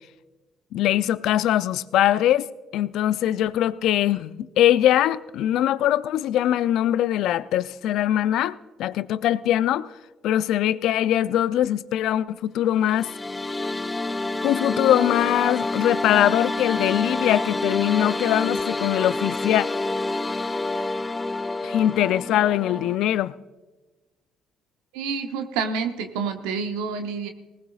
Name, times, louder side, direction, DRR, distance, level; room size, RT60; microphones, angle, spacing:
voice 1, 0.7-9.9 10.2-13.1 14.4-19.7 21.6-23.3, left 12 dB, 70° left, 0.4 m, -22 dB
sound 1, 12.8-23.0, left 2 dB, 25° left, 0.6 m, -28 dB
voice 2, 24.9-27.3, right 5 dB, 80° right, 0.9 m, -28 dB
19.5 x 18.5 x 2.4 m
hypercardioid pair, 50°, 0 cm